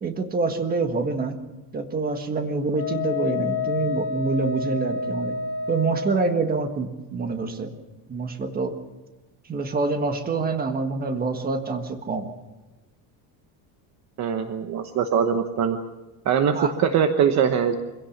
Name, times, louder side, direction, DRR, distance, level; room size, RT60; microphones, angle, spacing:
voice 1, 0.0-1.4 1.7-5.4 5.7-7.7 8.1-8.8 9.5-12.3 16.5-16.7, right 3 dB, 20° right, 6 dB, 1.6 m, -26 dB
Wind instrument woodwind instrument, 2.7-6.4, left 4 dB, 30° left, 4.4 m, -29 dB
voice 2, 14.2-15.8 16.2-17.7, right 7 dB, 40° right, 7 dB, 1.1 m, -22 dB
25.0 x 16.5 x 7.3 m, 1.1 s
cardioid pair, 170°, 41 cm